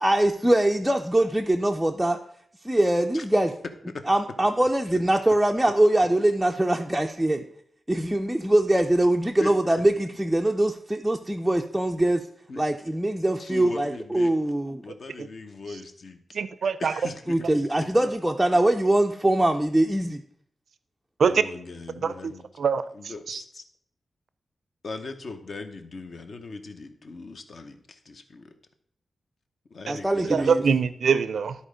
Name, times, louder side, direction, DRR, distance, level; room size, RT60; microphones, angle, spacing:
voice 1, 0.0-2.2 2.6-3.5 4.1-7.4 7.9-12.3 12.6-14.8 17.3-20.2 29.9-30.7, right 1 dB, 5° right, 1 dB, 0.4 m, -22 dB
voice 2, 9.4-9.7 12.5-12.7 13.4-14.3 14.8-16.4 16.8-17.5 21.2-22.5 22.9-23.6 24.8-28.5 29.7-30.7, left 3 dB, 50° left, 7 dB, 0.9 m, -39 dB
voice 3, 16.3-16.9 21.2-21.4 22.0-22.1 22.6-22.8 23.3-23.4 30.2-31.6, right 6 dB, 70° right, 14 dB, 0.4 m, -23 dB
12.5 x 4.2 x 5.0 m, 0.65 s
wide cardioid pair, 150°, 0 cm